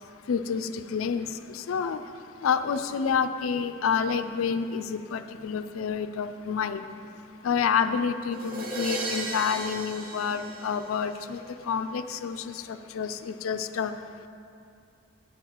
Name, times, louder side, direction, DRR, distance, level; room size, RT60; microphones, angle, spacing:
voice 1, 0.3-2.0 2.4-6.8 7.4-11.4 11.7-13.9, left 6 dB, 85° left, 11 dB, 0.4 m, -28 dB
sound 1, 8.3-11.3, right 2 dB, 45° right, 0.8 m, -35 dB
7.8 x 6.5 x 4.6 m, 2.5 s
head